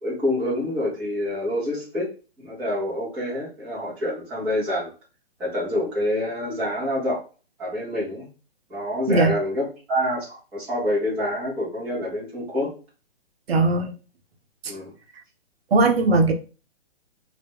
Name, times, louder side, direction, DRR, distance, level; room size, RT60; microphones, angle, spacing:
voice 1, 0.0-2.1 2.4-4.9 5.4-7.2 7.6-8.3 8.7-12.7 14.7-14.9, left 1 dB, 5° right, -9 dB, 0.4 m, -27 dB
voice 2, 13.5-13.9 14.6-14.7 15.7-16.3, right 3 dB, 75° right, 6 dB, 0.7 m, -19 dB
2.2 x 2.0 x 3.4 m, 0.35 s
figure-of-eight pair, 135°, 31 cm